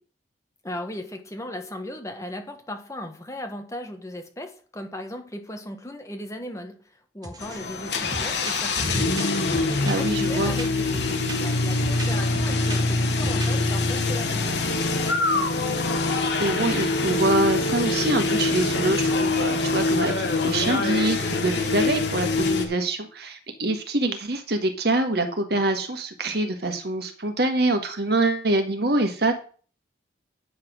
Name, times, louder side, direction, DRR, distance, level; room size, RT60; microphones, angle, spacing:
voice 1, 0.6-6.8 7.1-9.3 9.8-10.9 11.2-15.6, left 1 dB, 15° left, 5 dB, 1.4 m, -37 dB
sound 1, 7.2-7.6 7.9-14.1 14.5-15.0, right 1 dB, 20° right, 1.2 m, -38 dB
sound 2, 7.4-22.6, left 3 dB, 65° left, 1.5 m, -24 dB
voice 2, 9.8-10.5 16.4-20.1 20.4-29.3, right 2 dB, 60° right, 6 dB, 1.6 m, -25 dB
9.6 x 6.0 x 6.3 m, 0.41 s
head